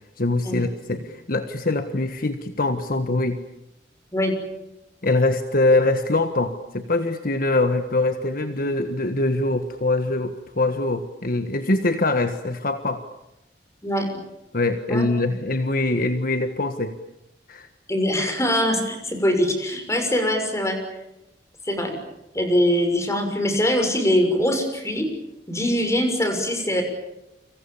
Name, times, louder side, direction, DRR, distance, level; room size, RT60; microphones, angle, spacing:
voice 1, 0.2-3.4 5.0-13.0 14.5-16.9 17.5-17.7, left 2 dB, 55° left, 8 dB, 1.5 m, -23 dB
voice 2, 14.9-15.3 17.9-20.8 21.6-22.0 22.3-25.1 25.5-26.8, equal, 15° left, 6 dB, 6.4 m, -22 dB
30.0 x 25.5 x 7.2 m, 0.89 s
head